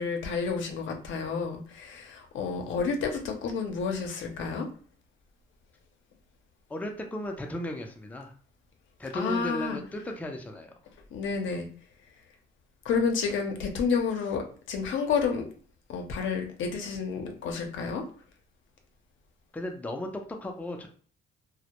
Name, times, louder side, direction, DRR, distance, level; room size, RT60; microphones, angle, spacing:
voice 1, 0.0-4.7 9.1-9.8 11.1-11.7 12.8-15.5 15.9-18.0, left 5 dB, 70° left, 3 dB, 0.6 m, -30 dB
voice 2, 6.7-8.3 9.0-10.7 19.5-20.9, left 1 dB, 5° left, 3 dB, 0.4 m, -35 dB
2.1 x 2.0 x 2.8 m, 0.43 s
cardioid pair, 90°, 20 cm